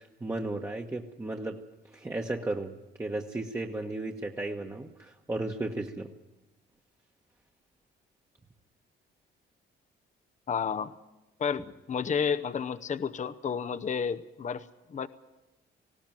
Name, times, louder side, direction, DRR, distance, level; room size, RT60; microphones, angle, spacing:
voice 1, 0.0-1.6 1.9-2.7 3.0-6.1, right 2 dB, 15° right, 0 dB, 1.3 m, -34 dB
voice 2, 10.5-10.9 11.4-14.7 14.9-15.1, left 6 dB, 40° left, 13 dB, 0.8 m, -31 dB
19.5 x 16.5 x 9.0 m, 1.0 s
cardioid pair, 90°, 20 cm